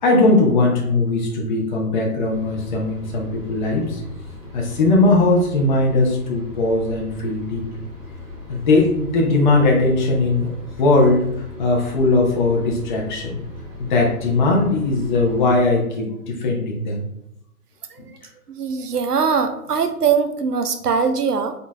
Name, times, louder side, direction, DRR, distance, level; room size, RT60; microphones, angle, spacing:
voice 1, 0.0-4.0 4.5-7.6 8.5-11.3 11.6-13.3 13.8-17.0, left 2 dB, 30° left, -1 dB, 0.7 m, -19 dB
sound 1, 2.3-15.6, left 2 dB, 20° right, 0.8 m, -38 dB
voice 2, 18.5-21.5, right 6 dB, 80° right, 8 dB, 0.7 m, -21 dB
4.4 x 3.9 x 2.3 m, 0.79 s
figure-of-eight pair, 130°, 45 cm